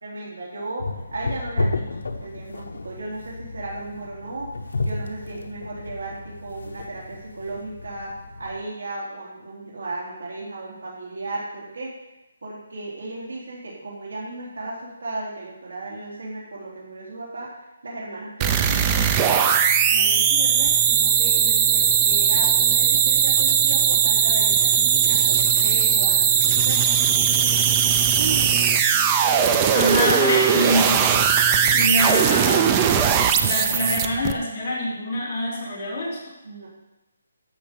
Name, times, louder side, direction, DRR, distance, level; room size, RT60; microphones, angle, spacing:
voice 1, 0.0-1.9 2.2-4.5 4.9-11.9 12.4-19.2 19.9-26.8 28.2-28.6 29.2-29.8 36.4-36.7, right 2 dB, 75° right, -4 dB, 3.4 m, -35 dB
sound 1, 0.8-8.6, left 2 dB, 70° left, 1.0 m, -32 dB
sound 2, 18.4-34.3, right 8 dB, 15° right, 0.4 m, -19 dB
voice 2, 29.7-31.2 31.7-32.7 33.4-36.2, left 1 dB, 20° left, -8 dB, 3.3 m, -25 dB
13.5 x 5.7 x 5.3 m, 1.0 s
hypercardioid pair, 180°, 0 cm